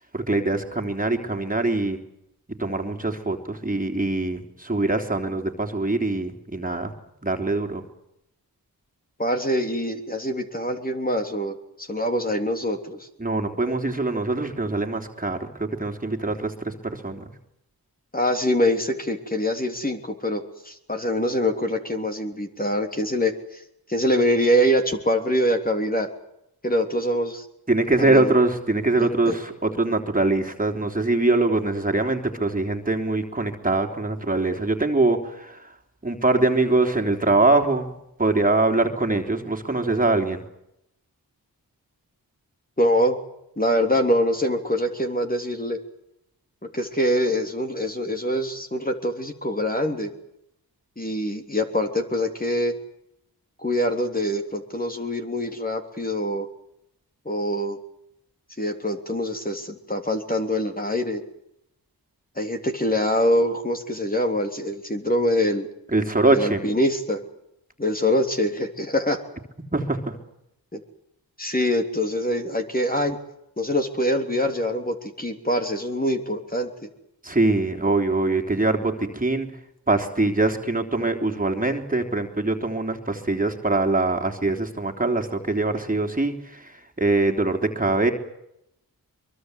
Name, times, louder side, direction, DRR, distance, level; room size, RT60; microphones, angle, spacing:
voice 1, 0.1-2.0 2.6-6.9 7.2-7.8 13.2-17.3 27.7-35.7 36.0-37.9 38.2-40.4 65.9-66.6 69.7-70.2 77.2-79.6 79.9-88.1, right 2 dB, 20° right, 3 dB, 3.5 m, -23 dB
voice 2, 9.2-13.1 18.1-23.6 23.9-26.1 26.6-27.5 28.0-28.3 29.3-29.4 42.8-43.2 43.6-45.8 46.7-50.1 51.0-52.8 53.6-56.5 57.3-57.8 58.6-61.2 62.4-65.7 66.3-67.2 67.8-69.2 70.7-70.8 71.4-73.2 73.6-76.7, equal, 20° left, 5 dB, 3.4 m, -24 dB
23.5 x 23.5 x 8.1 m, 0.82 s
cardioid pair, 60°, 39 cm